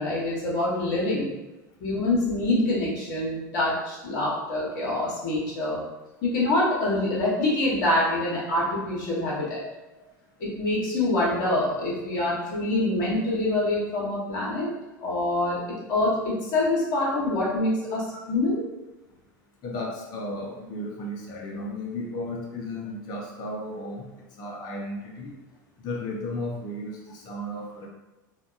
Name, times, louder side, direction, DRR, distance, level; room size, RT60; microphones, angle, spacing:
voice 1, 0.0-1.3 1.8-5.8 6.2-9.6 10.4-14.7 15.0-15.6 15.9-18.0 18.3-18.7, left 2 dB, 55° left, -6 dB, 1.0 m, -25 dB
voice 2, 19.6-24.1 24.4-25.3 25.8-27.9, left 1 dB, 40° left, -1 dB, 0.5 m, -34 dB
2.8 x 2.2 x 2.4 m, 1.1 s
figure-of-eight pair, 80°, 11 cm